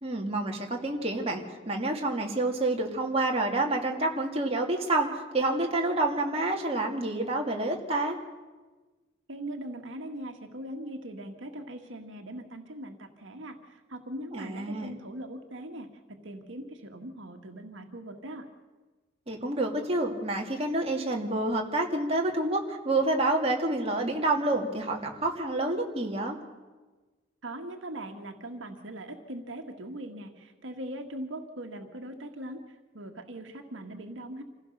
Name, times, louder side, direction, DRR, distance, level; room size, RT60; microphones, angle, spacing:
voice 1, 0.0-8.2 14.3-14.9 19.3-26.4, right 2 dB, 30° right, 0 dB, 2.3 m, -28 dB
voice 2, 9.3-18.5 27.4-34.4, right 1 dB, 75° right, 4 dB, 1.7 m, -40 dB
26.5 x 16.5 x 6.6 m, 1.3 s
head